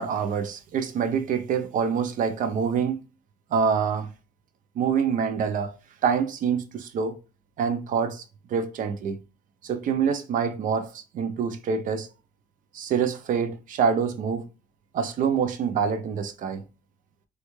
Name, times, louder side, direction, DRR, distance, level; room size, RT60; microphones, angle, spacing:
voice 1, 0.0-3.0 3.5-4.1 4.8-5.8 6.0-7.2 7.6-8.2 8.5-9.2 9.6-12.1 12.7-14.5 14.9-16.6, right 6 dB, 50° right, 0.5 m, -26 dB
3.4 x 2.3 x 3.0 m
cardioid pair, 110°, 17 cm